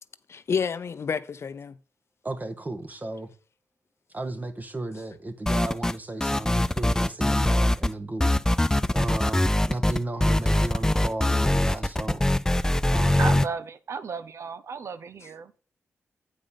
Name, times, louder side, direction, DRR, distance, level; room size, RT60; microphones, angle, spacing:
voice 1, 0.3-1.8, left 6 dB, 60° left, 0.6 m, -29 dB
voice 2, 2.2-3.3 4.1-8.3 8.9-12.3 12.9-13.4, right 2 dB, 30° right, 1.3 m, -34 dB
sound 1, 5.5-6.0 6.2-7.9 8.2-13.5, left 1 dB, 10° left, 0.3 m, -22 dB
voice 3, 13.2-15.6, right 5 dB, 65° right, 0.6 m, -34 dB
8.4 x 5.3 x 5.3 m
cardioid pair, 60°, 5 cm